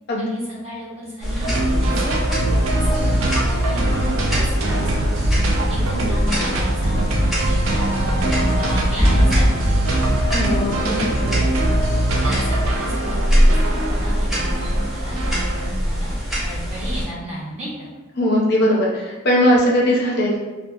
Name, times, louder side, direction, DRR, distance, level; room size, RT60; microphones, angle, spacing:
voice 1, 0.2-3.3 3.6-5.0 5.7-7.1 7.5-10.0 10.7-11.1 12.2-13.6 13.9-16.1 16.4-17.7, equal, 30° right, -7 dB, 0.9 m, -32 dB
sound 1, 1.2-17.1, equal, ahead, 0.5 m, -22 dB
sound 2, 1.4-15.7, right 1 dB, 85° right, 0.4 m, -22 dB
voice 2, 10.3-10.7 18.2-20.4, equal, 55° left, -3 dB, 0.5 m, -19 dB
2.7 x 2.3 x 2.3 m, 1.2 s
head